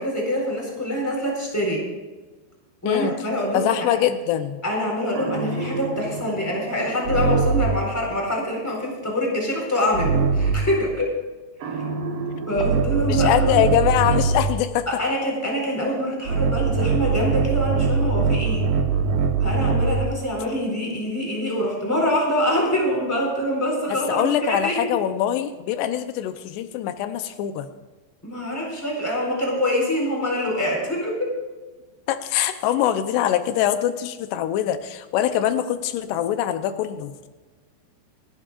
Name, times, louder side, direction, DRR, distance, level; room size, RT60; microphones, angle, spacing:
voice 1, 0.0-1.8 2.8-3.7 4.6-11.1 11.7-11.8 12.5-13.7 14.9-18.7 19.4-24.9 28.2-31.3, equal, 5° left, -2 dB, 3.8 m, -25 dB
voice 2, 3.5-4.6 13.1-14.9 23.9-27.7 32.1-37.1, left 11 dB, 85° left, 9 dB, 2.9 m, -23 dB
sound 1, 5.2-7.9 9.9-10.8 11.6-14.6 16.3-20.1, right 5 dB, 65° right, 2.6 m, -23 dB
28.5 x 11.5 x 2.5 m, 1.3 s
omnidirectional pair, 4.8 m